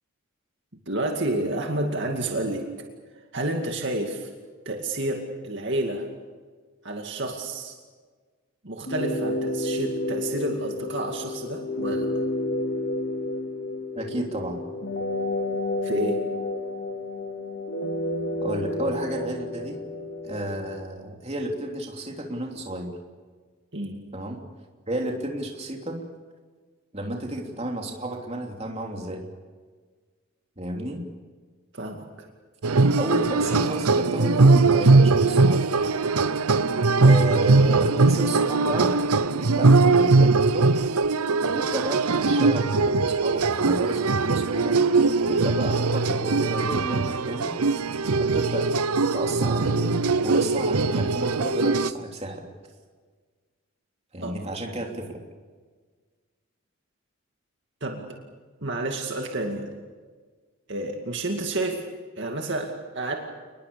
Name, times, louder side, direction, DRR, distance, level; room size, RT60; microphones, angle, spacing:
voice 1, 0.9-2.7 3.3-4.3 4.7-6.1 6.8-7.8 8.6-12.1 15.8-16.2 23.7-24.0 31.7-32.1 54.2-54.4 57.8-58.1 58.6-59.7 60.7-61.8 62.2-63.1, right 1 dB, 55° right, 2 dB, 2.3 m, -29 dB
sound 1, 8.8-20.8, left 1 dB, 50° left, 2.5 m, -30 dB
voice 2, 13.9-14.6 18.4-19.8 20.2-22.9 24.1-24.4 24.9-26.0 26.9-29.2 30.6-31.1 33.0-35.6 37.0-39.0 39.5-40.7 41.5-44.8 45.2-47.5 48.2-48.7 49.1-52.5 54.1-55.2, right 1 dB, 30° right, 1 dB, 3.1 m, -32 dB
sound 2, 32.6-51.9, right 3 dB, 85° right, 0.8 m, -21 dB
29.0 x 21.0 x 7.0 m, 1.5 s
head